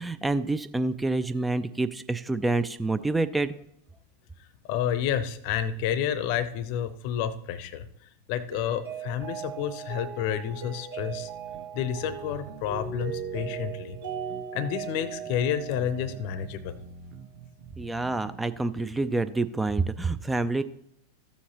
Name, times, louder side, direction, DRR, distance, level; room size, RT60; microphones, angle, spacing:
voice 1, 0.0-3.5 17.8-20.6, right 2 dB, 10° right, 12 dB, 0.4 m, -27 dB
voice 2, 4.7-7.9 8.3-11.3 11.7-14.0 14.5-16.8, left 9 dB, 45° left, 16 dB, 0.7 m, -30 dB
Mallet percussion, 8.5-16.7, right 7 dB, 65° right, 2.2 m, -38 dB
sound 1, 11.0-18.4, right 6 dB, 35° right, 1.3 m, -46 dB
14.0 x 7.1 x 2.9 m, 0.76 s
figure-of-eight pair, 90°, 0 cm